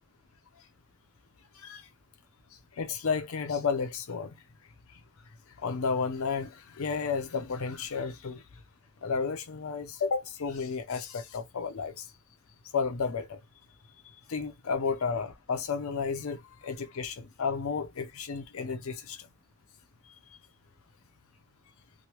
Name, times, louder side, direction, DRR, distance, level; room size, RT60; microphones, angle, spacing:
voice 1, 2.8-4.4 5.6-8.4 9.0-12.1 12.7-13.4 14.3-19.2, left 5 dB, 85° left, 0.5 m, -32 dB
3.1 x 2.1 x 2.9 m
head